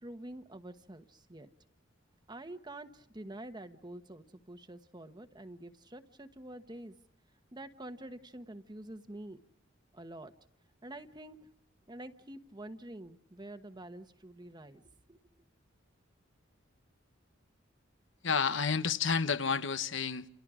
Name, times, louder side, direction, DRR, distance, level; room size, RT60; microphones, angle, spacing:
voice 1, 0.0-1.5 2.3-6.9 7.5-9.4 9.9-10.3 10.8-11.5 11.9-14.8 15.1-15.2, right 1 dB, 20° right, 1.2 m, -47 dB
voice 2, 18.2-20.3, left 5 dB, 65° left, 1.1 m, -30 dB
29.5 x 29.5 x 5.0 m
head